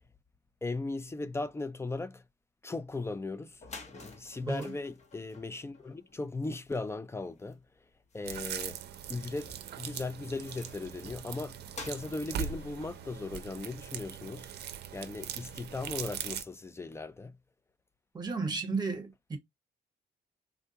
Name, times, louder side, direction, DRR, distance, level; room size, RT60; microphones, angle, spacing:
voice 1, 0.6-2.2 2.6-3.6 3.9-7.6 8.1-8.8 9.1-14.5 14.9-17.4, left 3 dB, 15° left, 0.4 m, -38 dB
sound 1, 3.2-3.3 3.5-14.3, left 3 dB, 40° left, 0.9 m, -52 dB
voice 2, 4.4-4.7 18.1-19.4, right 4 dB, 25° right, 1.2 m, -33 dB
sound 2, 8.2-16.4, right 9 dB, 70° right, 0.5 m, -41 dB
3.6 x 2.2 x 2.7 m
cardioid pair, 90°, 17 cm